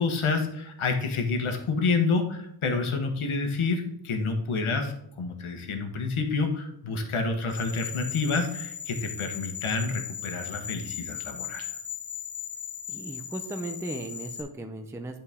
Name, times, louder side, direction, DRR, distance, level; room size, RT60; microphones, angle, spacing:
voice 1, 0.0-11.7, left 4 dB, 80° left, 5 dB, 1.3 m, -28 dB
sound 1, 7.5-14.4, left 8 dB, 45° left, 1.1 m, -38 dB
voice 2, 12.9-15.2, right 2 dB, 5° right, 5 dB, 0.4 m, -36 dB
10.5 x 4.5 x 3.5 m, 0.80 s
wide cardioid pair, 175°, 48 cm